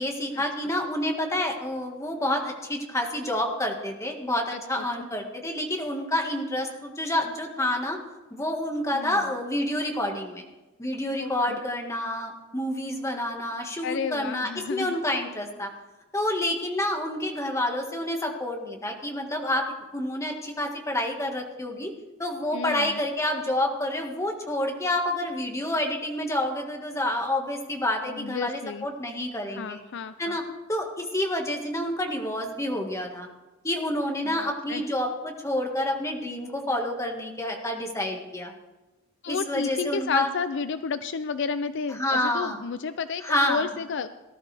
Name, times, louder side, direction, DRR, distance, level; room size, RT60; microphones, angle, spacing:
voice 1, 0.0-8.0 8.3-10.4 10.8-15.7 16.1-21.9 22.2-29.8 30.2-33.3 33.6-38.5 39.3-40.3 41.9-42.6 43.2-43.7, left 1 dB, 15° left, 2 dB, 1.7 m, -28 dB
voice 2, 4.5-4.8 8.9-9.2 11.2-11.6 13.8-15.0 22.5-23.0 28.0-28.9 29.5-30.4 34.2-34.8 39.2-44.1, left 5 dB, 60° left, 12 dB, 0.5 m, -32 dB
18.5 x 12.5 x 3.4 m, 1.1 s
head